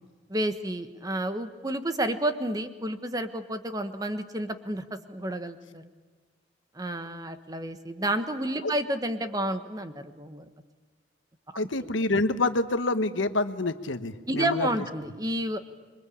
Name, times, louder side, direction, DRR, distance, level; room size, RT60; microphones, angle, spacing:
voice 1, 0.3-5.9 6.7-10.4 14.3-15.6, right 1 dB, 20° right, 9 dB, 1.3 m, -30 dB
voice 2, 11.5-14.7, left 2 dB, 85° left, 10 dB, 1.2 m, -27 dB
26.5 x 23.0 x 8.6 m, 1.5 s
head